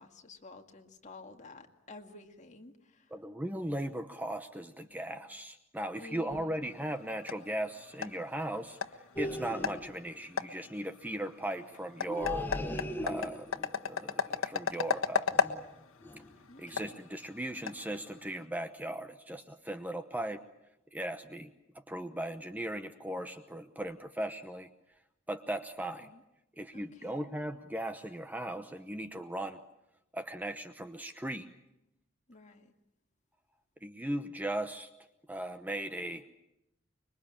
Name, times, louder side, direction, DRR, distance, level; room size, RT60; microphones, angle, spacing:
voice 1, 0.0-3.1 4.8-5.2 6.0-6.8 16.5-17.0 26.0-26.2 26.7-27.3 32.3-32.7, left 2 dB, 35° left, 4 dB, 2.2 m, -52 dB
voice 2, 3.1-8.8 9.2-12.5 13.0-15.4 16.6-20.4 20.9-21.5 21.9-24.7 25.3-26.1 26.6-29.6 30.1-31.5 33.8-34.9 35.3-36.2, right 1 dB, 10° right, 8 dB, 0.9 m, -38 dB
sound 1, 6.6-18.4, left 6 dB, 85° left, 1.4 m, -37 dB
sound 2, 9.2-10.0 12.1-13.6 15.3-15.7 16.0-16.4 16.7-16.9, left 1 dB, 10° left, 1.3 m, -38 dB
25.5 x 23.0 x 8.7 m, 0.88 s
head